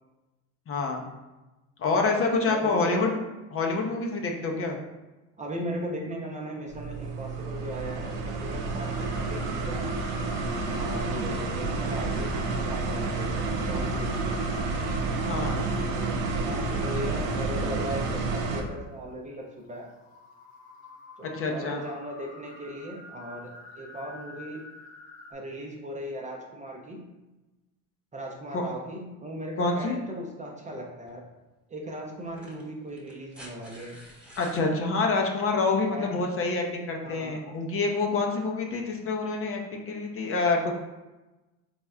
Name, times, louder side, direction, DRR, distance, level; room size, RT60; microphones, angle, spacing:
voice 1, 0.7-1.0 1.8-3.1 3.5-4.8 15.2-15.6 21.2-21.8 28.5-28.6 29.6-30.0 34.4-40.8, left 3 dB, 35° left, 1 dB, 0.7 m, -27 dB
voice 2, 2.0-3.1 5.4-10.0 10.7-14.4 15.9-19.9 21.2-24.7 25.3-27.1 28.1-31.2 31.7-34.0 35.9-36.1 37.0-37.4, equal, 20° right, 0 dB, 0.6 m, -38 dB
sound 1, 6.7-18.6, right 3 dB, 70° right, 0.7 m, -30 dB
sound 2, 8.8-18.9 19.4-25.3, left 2 dB, 90° left, 0.7 m, -48 dB
sound 3, 31.1-31.2 32.2-34.7 36.2-36.3, equal, 5° right, 1.1 m, -49 dB
4.0 x 3.5 x 2.3 m, 1.1 s
supercardioid pair, 90°, 38 cm